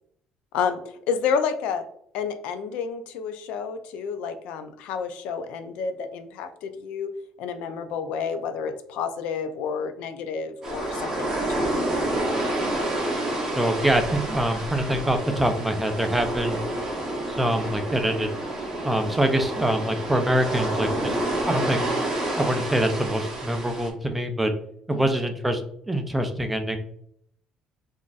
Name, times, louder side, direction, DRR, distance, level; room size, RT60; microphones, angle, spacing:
voice 1, 0.5-1.8 2.1-7.1 7.4-11.8 24.9-25.2, left 6 dB, 75° left, 9 dB, 0.4 m, -30 dB
sound 1, 10.6-23.9, right 1 dB, 25° right, 0.8 m, -29 dB
voice 2, 13.5-16.6 17.3-18.4 18.8-21.8 22.4-24.5 24.9-25.6 25.9-26.8, right 1 dB, 5° right, 5 dB, 0.3 m, -24 dB
3.8 x 2.5 x 2.3 m, 0.68 s
cardioid pair, 165°, 2 cm